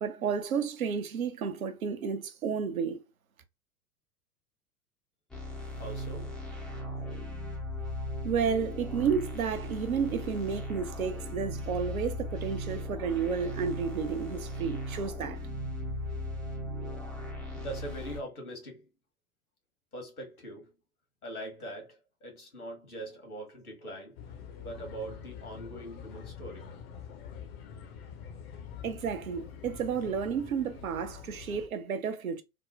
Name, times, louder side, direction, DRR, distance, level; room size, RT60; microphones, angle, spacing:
voice 1, 0.0-3.0 8.2-15.4 28.8-32.4, right 6 dB, 70° right, 0.7 m, -31 dB
sound 1, 5.3-18.2, left 1 dB, ahead, 0.4 m, -37 dB
voice 2, 5.7-6.4 17.5-18.9 19.9-20.7 21.2-24.2 24.6-26.7, right 1 dB, 80° left, 1.5 m, -42 dB
sound 2, 24.2-31.7, left 7 dB, 45° left, 0.6 m, -45 dB
3.5 x 2.0 x 2.5 m
figure-of-eight pair, 90°, 43 cm